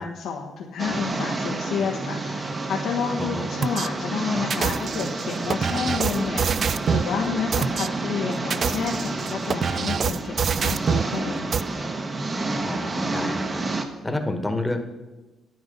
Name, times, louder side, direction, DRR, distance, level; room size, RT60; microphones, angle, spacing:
voice 1, 0.0-6.6 6.9-11.6, left 6 dB, 85° left, -1 dB, 1.3 m, -30 dB
sound 1, 0.8-13.8, right 2 dB, 30° right, 1.2 m, -29 dB
sound 2, 3.6-3.9 4.5-7.1 7.5-7.9 8.4-11.1 11.5-11.6, right 6 dB, 50° right, 0.3 m, -25 dB
voice 2, 12.6-13.6 14.0-14.8, left 1 dB, 10° left, 6 dB, 1.3 m, -29 dB
10.0 x 9.5 x 5.4 m, 1.1 s
cardioid pair, 90°, 0 cm